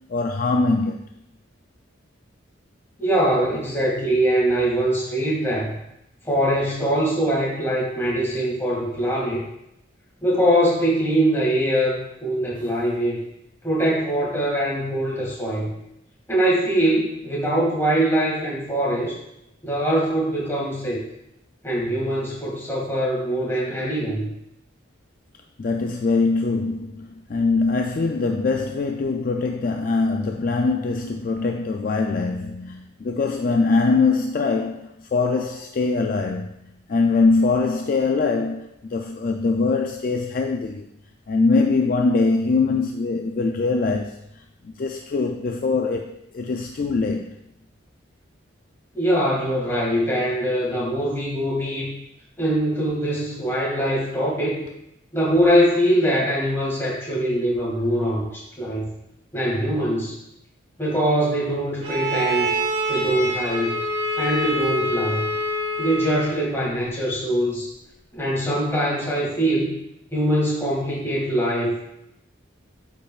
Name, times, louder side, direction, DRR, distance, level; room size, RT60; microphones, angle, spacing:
voice 1, 0.1-1.0 25.6-36.5 36.9-40.9 41.3-44.2 44.6-47.4, left 3 dB, 45° left, 3 dB, 0.3 m, -22 dB
voice 2, 3.0-5.7 6.2-9.4 10.2-13.2 13.6-15.7 16.3-19.1 19.6-21.0 21.6-24.3 48.9-51.9 52.4-54.6 55.1-58.9 59.3-60.2 60.8-62.5 62.9-63.8 64.2-65.2 65.8-67.7 68.1-69.7 70.1-71.7, right 1 dB, 10° left, -6 dB, 2.1 m, -22 dB
Bowed string instrument, 61.8-66.4, equal, 30° right, 1.2 m, -26 dB
8.7 x 5.2 x 2.4 m, 0.82 s
head